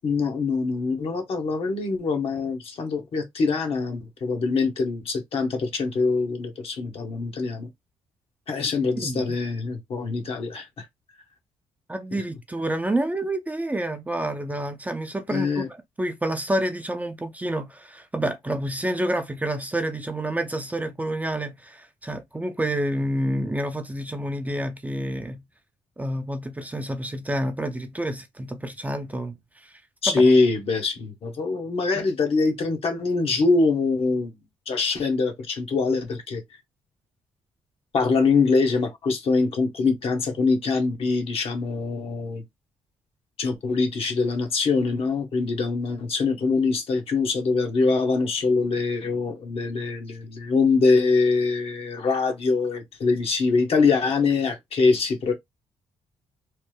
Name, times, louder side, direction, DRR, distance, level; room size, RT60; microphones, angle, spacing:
voice 1, 0.0-7.7 8.5-10.9 12.1-12.2 15.3-15.7 30.0-34.3 34.7-36.4 37.9-42.4 43.4-55.3, left 4 dB, 60° left, 1.1 m, -23 dB
voice 2, 11.9-15.6 16.0-25.4 26.0-29.7 30.1-30.2, right 1 dB, 15° right, 0.6 m, -28 dB
3.2 x 2.0 x 3.3 m
cardioid pair, 75°, 11 cm